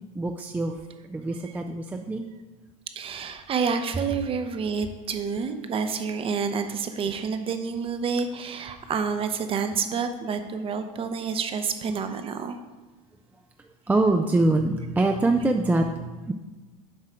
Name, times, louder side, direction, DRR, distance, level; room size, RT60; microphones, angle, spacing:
voice 1, 0.2-0.8 1.1-2.3 13.9-16.3, right 2 dB, 10° right, 4 dB, 0.4 m, -24 dB
voice 2, 3.0-12.6, right 5 dB, 30° right, 8 dB, 0.7 m, -28 dB
7.6 x 4.8 x 4.4 m, 1.2 s
supercardioid pair, 110°, 18 cm